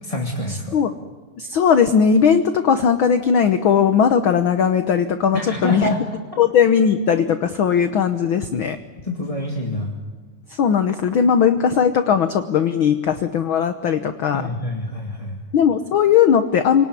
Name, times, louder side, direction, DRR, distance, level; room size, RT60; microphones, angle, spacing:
voice 1, 0.0-0.8 5.3-6.0 9.0-9.9 14.3-15.4, left 1 dB, 15° left, 0 dB, 2.0 m, -26 dB
voice 2, 1.4-5.9 6.4-8.8 10.6-14.4 15.5-16.8, left 7 dB, 60° left, 9 dB, 1.4 m, -18 dB
28.5 x 19.0 x 9.8 m, 1.4 s
omnidirectional pair, 3.3 m